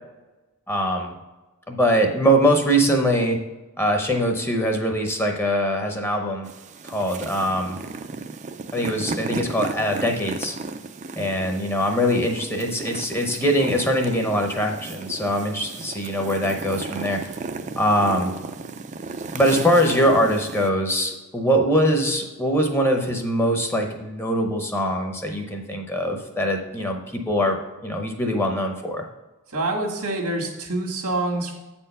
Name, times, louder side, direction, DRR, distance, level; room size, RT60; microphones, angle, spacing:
voice 1, 0.7-1.1 1.7-3.4 3.8-6.5 6.8-7.8 8.7-10.6 11.2-17.4 17.8-18.3 19.3-27.6 27.8-29.0, equal, 10° left, 3 dB, 0.7 m, -22 dB
sound 1, 6.4-20.7, right 4 dB, 30° right, 0.4 m, -35 dB
voice 2, 29.5-31.6, right 2 dB, 90° right, 1 dB, 1.7 m, -26 dB
8.2 x 4.4 x 5.4 m, 1.1 s
head